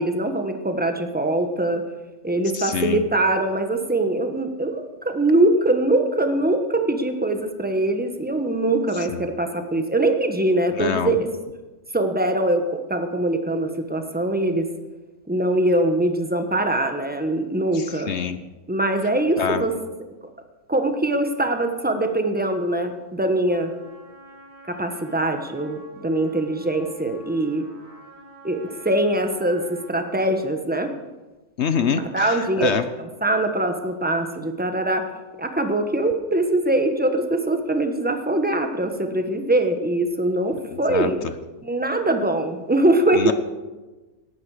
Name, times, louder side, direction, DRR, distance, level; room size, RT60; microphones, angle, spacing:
voice 1, 0.0-1.8 2.2-11.3 11.9-14.7 15.3-18.1 18.7-19.7 20.7-23.7 24.7-27.7 28.4-30.9 32.1-32.8 33.2-35.1 35.4-41.3 41.6-43.3, right 1 dB, 5° right, 6 dB, 1.1 m, -22 dB
voice 2, 2.5-3.0 9.1-9.2 10.8-11.1 17.7-18.4 19.4-19.6 31.6-32.9 40.7-41.1 43.1-43.3, left 6 dB, 55° left, 11 dB, 0.9 m, -25 dB
Trumpet, 23.5-30.4, right 1 dB, 75° right, 7.2 m, -47 dB
17.5 x 12.5 x 5.0 m, 1.2 s
omnidirectional pair, 1.6 m